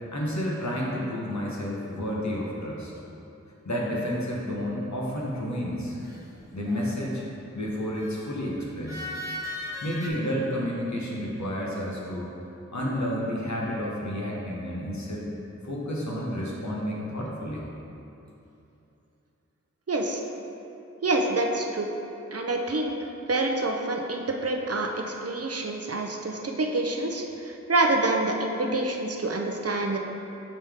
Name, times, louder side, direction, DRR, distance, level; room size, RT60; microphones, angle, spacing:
voice 1, 0.1-2.9 3.6-6.0 6.5-7.2 7.5-9.0 9.8-12.3 12.7-15.3 15.6-17.6, equal, 70° left, -4 dB, 1.1 m, -30 dB
sound 1, 6.0-7.1 8.0-8.2 8.9-10.1, left 1 dB, 10° right, 1.1 m, -37 dB
voice 2, 19.9-20.2 21.0-21.9 22.3-30.0, right 2 dB, 55° right, 2 dB, 0.6 m, -27 dB
5.5 x 5.1 x 3.5 m, 2.8 s
wide cardioid pair, 45°, 29 cm